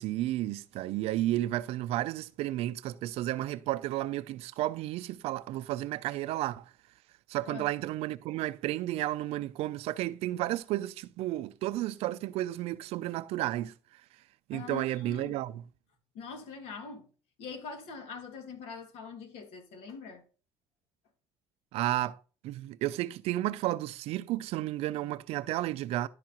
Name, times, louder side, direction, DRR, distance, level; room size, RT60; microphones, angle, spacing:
voice 1, 0.0-6.6 7.3-13.7 14.5-15.6 21.7-22.2 22.4-26.1, right 15 dB, 70° right, 0.5 m, -32 dB
voice 2, 14.5-15.4 16.1-17.1 17.4-20.2, left 5 dB, 70° left, 2.1 m, -43 dB
12.5 x 4.8 x 3.0 m
supercardioid pair, 75°, 11 cm